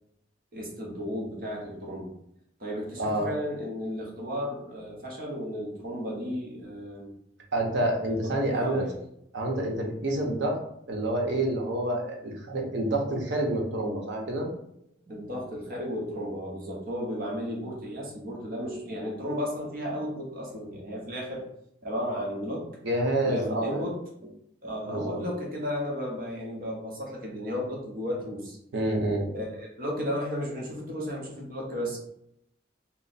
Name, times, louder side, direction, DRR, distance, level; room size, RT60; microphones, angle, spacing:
voice 1, 0.5-2.1 2.6-7.1 8.1-8.9 15.1-21.4 21.8-22.7 23.2-24.0 24.6-28.6 29.3-32.0, equal, 50° right, -2 dB, 0.9 m, -34 dB
voice 2, 3.0-3.3 7.5-8.8 9.3-10.6 10.9-14.5 22.8-23.9 24.9-25.2 28.7-29.3, right 1 dB, 80° right, 0 dB, 0.8 m, -28 dB
3.1 x 2.0 x 4.0 m, 0.74 s
head